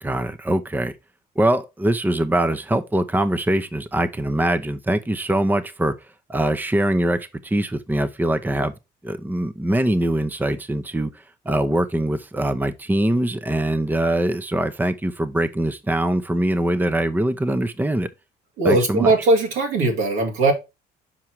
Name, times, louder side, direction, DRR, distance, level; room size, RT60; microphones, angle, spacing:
voice 1, 0.0-0.9 1.4-5.9 6.3-8.7 9.0-11.1 11.4-18.1 18.6-19.1, right 1 dB, 10° right, 0.7 m, -22 dB
voice 2, 18.6-20.5, right 2 dB, 85° right, 2.3 m, -19 dB
5.9 x 4.8 x 4.6 m
supercardioid pair, 70°, 20 cm